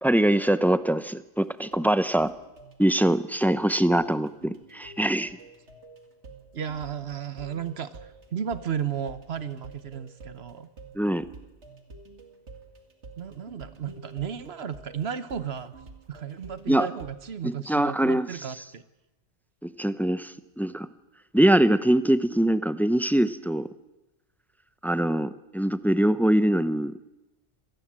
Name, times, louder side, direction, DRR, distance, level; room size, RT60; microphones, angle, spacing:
voice 1, 0.0-2.3 2.8-5.4 10.9-11.2 16.7-16.9 17.4-18.3 19.6-20.9 21.3-23.7 24.8-26.9, right 1 dB, ahead, 13 dB, 0.6 m, -23 dB
sound 1, 1.4-17.2, right 3 dB, 85° right, 2.5 m, -49 dB
voice 2, 6.5-10.7 13.2-15.7 16.1-18.8, right 8 dB, 65° right, 13 dB, 1.3 m, -34 dB
26.0 x 18.5 x 7.5 m, 0.98 s
omnidirectional pair, 1.1 m